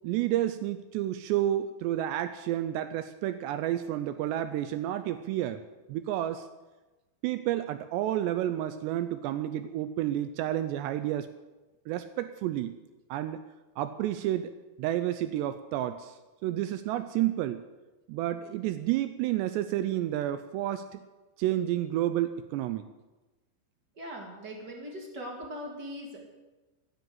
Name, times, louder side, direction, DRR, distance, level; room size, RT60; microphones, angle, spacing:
voice 1, 0.0-5.6 5.9-6.5 7.2-11.3 11.9-12.8 13.1-13.4 13.8-14.5 14.8-16.2 16.4-17.6 18.1-21.0 21.4-22.9, right 13 dB, 85° right, 11 dB, 2.5 m, -30 dB
voice 2, 23.9-26.3, equal, 40° right, 0 dB, 1.6 m, -40 dB
15.5 x 10.5 x 7.8 m, 1.1 s
omnidirectional pair, 5.6 m